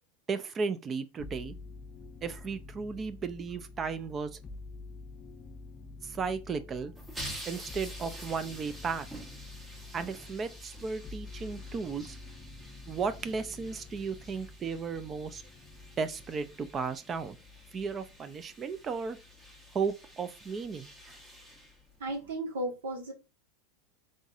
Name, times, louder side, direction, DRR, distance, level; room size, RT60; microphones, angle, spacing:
voice 1, 0.3-1.6 2.2-4.4 6.0-6.9 7.5-9.1 9.9-12.2 12.9-15.4 16.0-17.4 17.7-19.2 19.7-21.2, right 5 dB, 30° right, 0.4 m, -35 dB
sound 1, 1.2-18.6 19.0-19.7, left 3 dB, 25° left, 0.4 m, -48 dB
sound 2, 6.9-22.3, equal, 10° right, 1.1 m, -49 dB
voice 2, 22.0-23.1, right 1 dB, 80° right, 1.4 m, -34 dB
3.9 x 3.7 x 2.4 m
hypercardioid pair, 105°, 0 cm